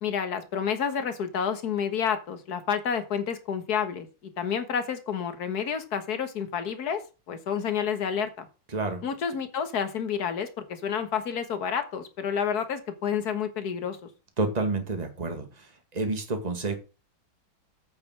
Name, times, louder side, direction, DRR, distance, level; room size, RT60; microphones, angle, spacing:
voice 1, 0.0-4.1 4.4-7.0 7.3-8.5 9.0-14.0, left 7 dB, 50° left, 9 dB, 1.8 m, -29 dB
voice 2, 8.7-9.0 14.4-16.7, right 3 dB, 20° right, 5 dB, 2.0 m, -29 dB
8.5 x 6.9 x 6.1 m, 0.31 s
omnidirectional pair, 2.3 m